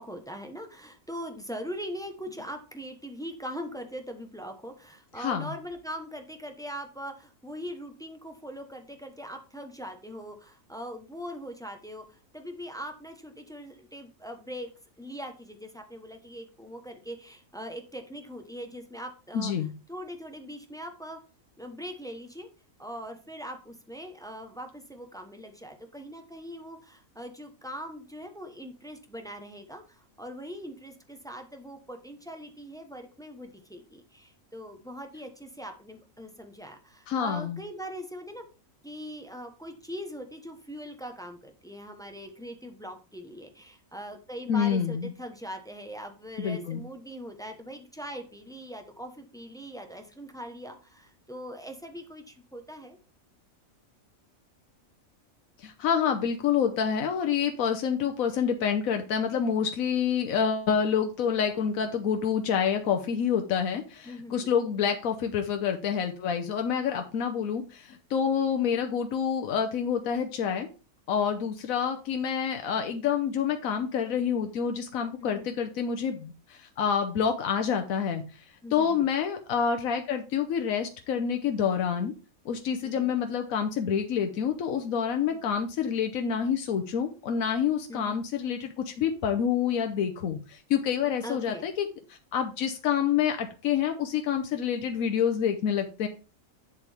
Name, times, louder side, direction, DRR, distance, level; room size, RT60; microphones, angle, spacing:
voice 1, 0.0-14.7 15.0-19.5 19.9-21.2 21.6-22.5 22.8-38.4 38.8-53.0 64.0-64.5 75.2-75.5 78.6-79.1 82.8-83.2 85.3-85.4 87.9-88.2 91.2-91.7, equal, 5° left, 5 dB, 0.9 m, -41 dB
voice 2, 5.2-5.5 19.3-19.7 37.1-37.6 44.5-45.1 46.4-46.8 55.6-70.7 71.1-78.2 78.7-82.1 82.4-96.1, left 7 dB, 85° left, 5 dB, 1.2 m, -27 dB
7.8 x 7.3 x 3.5 m, 0.33 s
omnidirectional pair, 1.4 m